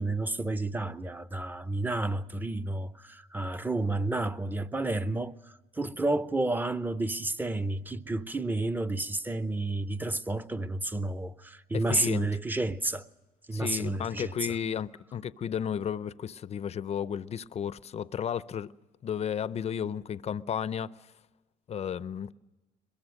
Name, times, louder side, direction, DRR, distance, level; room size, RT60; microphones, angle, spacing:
voice 1, 0.0-13.1 13.5-14.4, right 2 dB, 10° right, 0.8 m, -31 dB
voice 2, 11.7-12.3 13.5-18.7 19.0-20.9 21.7-22.3, left 8 dB, 40° left, 0.6 m, -33 dB
22.5 x 22.0 x 6.5 m
cardioid pair, 110°, 17 cm